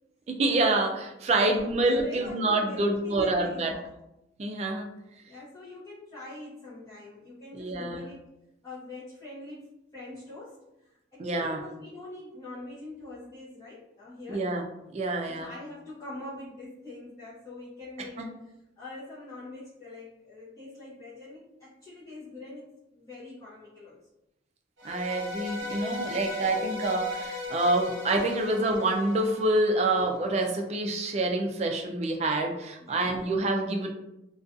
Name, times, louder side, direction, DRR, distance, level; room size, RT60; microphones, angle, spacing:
voice 1, 0.3-3.8 4.4-4.9 7.5-8.0 11.2-11.6 14.3-14.7 14.9-15.5 18.2-18.3 24.8-33.9, right 2 dB, 35° right, 2 dB, 0.3 m, -27 dB
voice 2, 1.2-3.8 5.2-8.2 8.6-9.7 9.9-10.6 11.1-14.5 15.3-18.3 18.8-24.0 32.8-33.1, left 2 dB, 20° left, -13 dB, 0.7 m, -44 dB
sound 1, 24.8-30.0, left 3 dB, 65° right, 0.8 m, -37 dB
2.5 x 2.3 x 2.4 m, 0.89 s
head